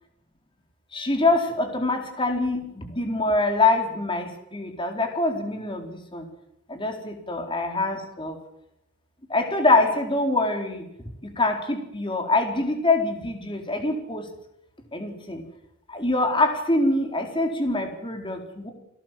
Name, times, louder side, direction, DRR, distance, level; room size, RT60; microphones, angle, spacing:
voice 1, 0.9-6.2 6.7-8.4 9.3-10.8 11.2-14.2 14.9-15.4 15.9-18.7, left 2 dB, 20° left, 4 dB, 4.2 m, -24 dB
30.0 x 18.0 x 7.7 m, 0.83 s
head